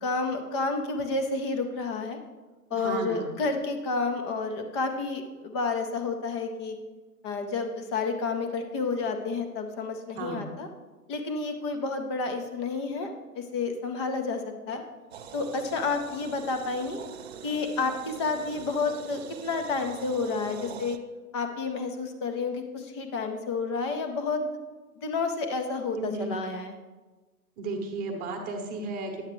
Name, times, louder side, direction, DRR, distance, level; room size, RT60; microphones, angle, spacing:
voice 1, 0.0-2.2 2.7-6.8 7.2-10.7 11.1-14.4 14.7-14.8 15.3-17.0 17.4-21.0 21.3-24.4 25.0-26.7, left 4 dB, 20° left, 6 dB, 0.5 m, -30 dB
voice 2, 2.7-3.3 10.2-10.6 20.3-20.7 26.0-26.4 27.6-29.2, right 3 dB, 20° right, 3 dB, 1.0 m, -34 dB
sound 1, 15.1-21.0, right 7 dB, 45° right, 0.5 m, -43 dB
10.0 x 7.2 x 3.0 m, 1.2 s
figure-of-eight pair, 120°, 47 cm